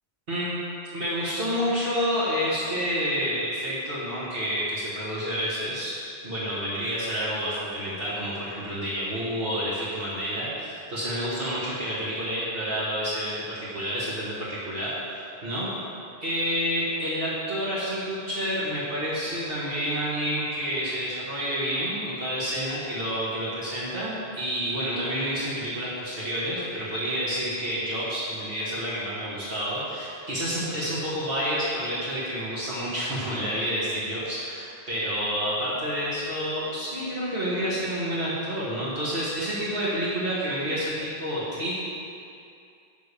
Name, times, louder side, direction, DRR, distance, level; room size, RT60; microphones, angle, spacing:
voice 1, 0.9-5.9 6.2-14.9 15.4-15.7 16.2-41.7, equal, 65° right, -9 dB, 1.7 m, -29 dB
9.0 x 3.5 x 6.7 m, 2.5 s
omnidirectional pair, 1.1 m